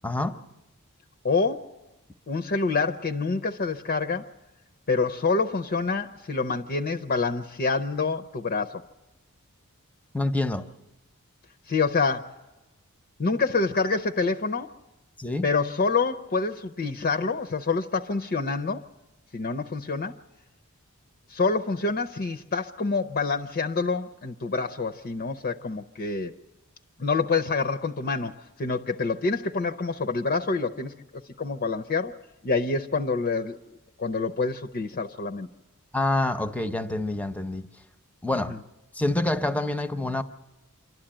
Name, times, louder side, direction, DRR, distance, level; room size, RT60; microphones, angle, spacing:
voice 1, 0.0-0.4 10.1-10.7 15.2-15.5 35.9-37.6 38.2-38.5 38.9-40.2, left 2 dB, 5° left, 0.7 m, -26 dB
voice 2, 1.2-1.7 2.3-4.3 4.9-8.8 11.7-12.3 13.2-14.7 15.4-18.8 19.3-20.1 21.3-26.3 27.0-30.9 31.4-32.1 32.4-33.6 34.0-35.5 38.5-38.6, left 4 dB, 45° left, 0.6 m, -27 dB
27.0 x 12.0 x 8.8 m
head